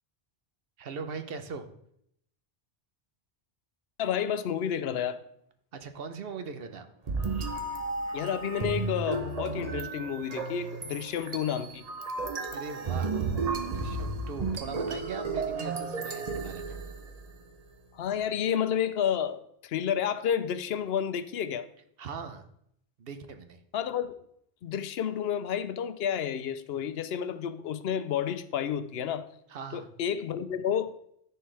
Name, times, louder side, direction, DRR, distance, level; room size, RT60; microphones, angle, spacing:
voice 1, 0.8-1.7 5.7-6.9 12.5-13.1 13.6-16.8 22.0-22.4 23.0-23.6 29.5-29.9, right 5 dB, 70° right, 1.0 m, -40 dB
voice 2, 4.0-5.2 8.1-11.8 17.9-21.7 23.7-24.1 24.6-29.3 29.7-30.9, left 8 dB, 75° left, 0.8 m, -30 dB
sound 1, 7.1-17.4, right 3 dB, 45° right, 0.8 m, -33 dB
13.5 x 4.5 x 3.3 m
omnidirectional pair, 1.0 m